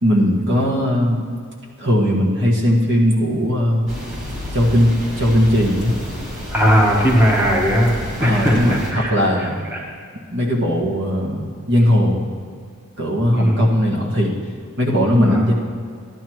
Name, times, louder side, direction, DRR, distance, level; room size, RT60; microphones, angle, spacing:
voice 1, 0.0-1.2 1.8-3.9 4.5-6.0 8.2-9.6 10.3-12.3 13.0-14.4 14.8-15.5, equal, 55° right, -2 dB, 1.7 m, -18 dB
sound 1, 3.9-8.9, left 1 dB, 35° right, 2.1 m, -30 dB
voice 2, 6.5-9.8 13.3-13.7 15.2-15.4, equal, 10° right, -3 dB, 1.1 m, -18 dB
13.5 x 11.0 x 3.1 m, 2.2 s
head